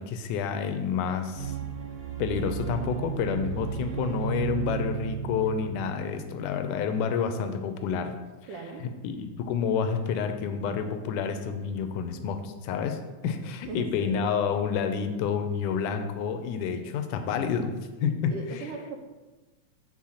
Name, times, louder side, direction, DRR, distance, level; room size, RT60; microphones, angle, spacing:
voice 1, 0.0-1.5 2.2-8.1 8.8-13.0 13.2-17.7 18.0-18.3, left 6 dB, 90° left, 8 dB, 2.2 m, -29 dB
sound 1, 1.3-6.6, right 8 dB, 50° right, 2.2 m, -34 dB
voice 2, 8.5-8.9 13.6-14.2 18.0-19.0, right 3 dB, 85° right, 3 dB, 2.4 m, -38 dB
5.6 x 4.4 x 6.2 m, 1.2 s
omnidirectional pair, 3.5 m